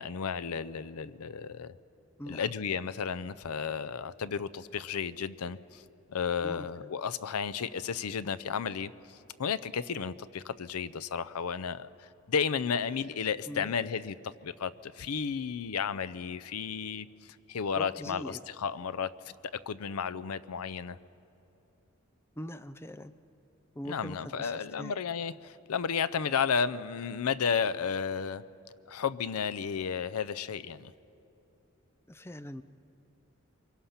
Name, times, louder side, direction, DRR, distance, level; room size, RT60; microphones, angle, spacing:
voice 1, 0.0-1.8 2.3-5.8 6.1-21.0 23.9-28.4 28.9-30.9, left 6 dB, 85° left, 14 dB, 0.5 m, -33 dB
voice 2, 6.4-6.9 13.5-13.7 17.7-18.4 22.4-23.1 23.8-24.9 32.1-32.6, equal, 10° left, 12 dB, 0.4 m, -42 dB
25.0 x 22.0 x 5.8 m, 2.9 s
head